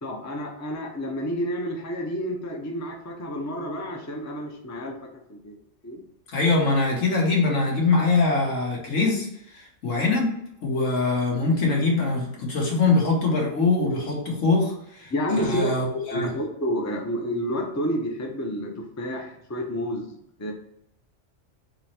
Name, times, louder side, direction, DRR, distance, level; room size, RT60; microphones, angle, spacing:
voice 1, 0.0-5.6 5.8-6.0 15.1-15.7 16.1-20.1 20.4-20.5, equal, 20° left, 1 dB, 0.5 m, -29 dB
voice 2, 6.3-10.3 10.6-16.3, left 3 dB, 75° left, -2 dB, 1.7 m, -23 dB
3.9 x 3.1 x 4.3 m, 0.73 s
omnidirectional pair, 1.3 m